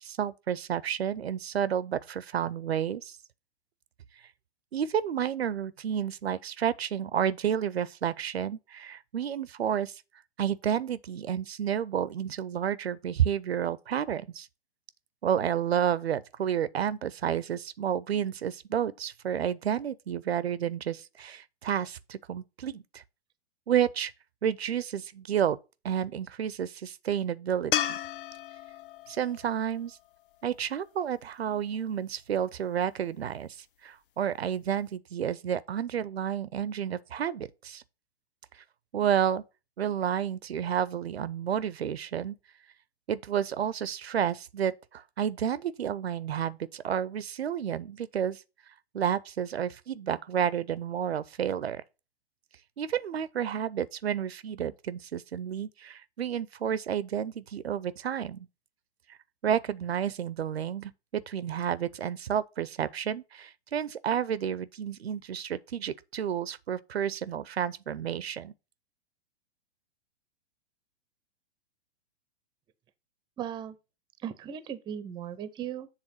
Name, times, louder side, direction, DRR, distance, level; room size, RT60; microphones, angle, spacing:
voice 1, 0.0-3.2 4.7-10.0 10.4-14.5 15.2-23.0 23.7-24.1 24.4-25.6 25.8-27.7 29.1-30.0 30.4-37.8 38.9-39.4 39.8-42.4 43.1-48.4 48.9-51.8 52.8-58.5 59.1-59.2 59.4-68.5, right 9 dB, 75° right, 0.5 m, -30 dB
sound 1, 27.7-31.0 34.2-34.3, left 11 dB, 55° left, 0.6 m, -34 dB
voice 2, 73.4-73.8 74.2-75.9, right 9 dB, 15° right, 0.5 m, -37 dB
7.4 x 3.5 x 6.3 m
figure-of-eight pair, 105°, 32 cm